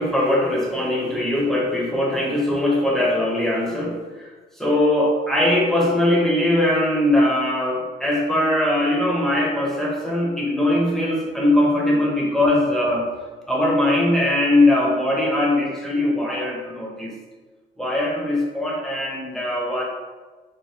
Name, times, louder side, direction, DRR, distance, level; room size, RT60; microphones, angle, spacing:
voice 1, 0.0-13.1 13.5-17.1 17.8-19.8, left 1 dB, ahead, -4 dB, 1.0 m, -21 dB
3.3 x 2.2 x 4.3 m, 1.4 s
cardioid pair, 90°, 20 cm